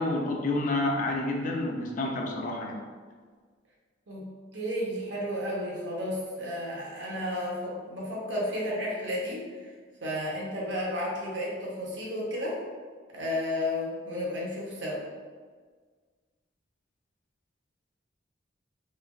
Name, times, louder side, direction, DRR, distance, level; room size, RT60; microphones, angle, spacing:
voice 1, 0.0-2.8, left 2 dB, 45° left, 0 dB, 0.4 m, -29 dB
voice 2, 4.5-9.4 10.0-12.6 13.1-15.0, left 1 dB, 75° right, -4 dB, 0.7 m, -32 dB
3.1 x 2.3 x 2.2 m, 1.5 s
head